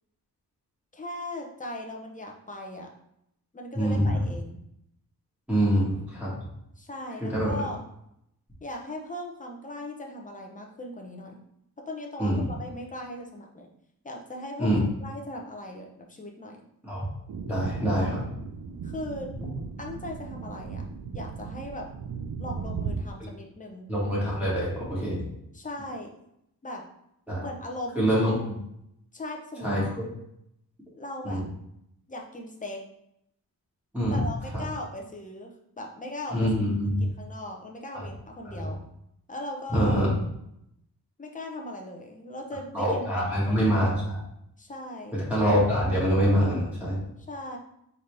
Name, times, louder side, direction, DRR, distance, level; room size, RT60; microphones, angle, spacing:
voice 1, 0.9-2.9 3.5-4.6 6.8-7.8 8.6-11.4 11.8-13.7 14.0-14.7 15.0-16.6 17.9-18.2 18.8-19.3 19.8-20.9 21.1-21.9 22.4-23.9 25.5-26.1 26.6-26.8 27.4-28.1 29.1-30.0 30.9-31.4 32.1-32.8 34.1-36.5 37.0-38.8 39.3-40.0 41.2-43.0 43.3-43.8 44.6-45.2 47.3-47.6, left 1 dB, 20° left, 1 dB, 0.8 m, -38 dB
voice 2, 3.7-4.3 5.5-6.3 7.2-7.6 12.2-12.5 14.6-14.9 16.8-17.0 17.5-18.2 23.2-23.3 23.9-25.2 27.3-27.4 28.0-28.6 29.6-30.1 31.2-31.5 33.9-34.2 34.5-34.6 36.3-37.0 37.9-38.1 38.5-38.7 39.7-40.1 42.7-44.2 45.1-47.0, equal, 5° right, -9 dB, 1.8 m, -25 dB
sound 1, 17.3-23.0, right 5 dB, 75° right, 0.6 m, -36 dB
4.1 x 3.9 x 3.3 m, 0.78 s
wide cardioid pair, 125°, 37 cm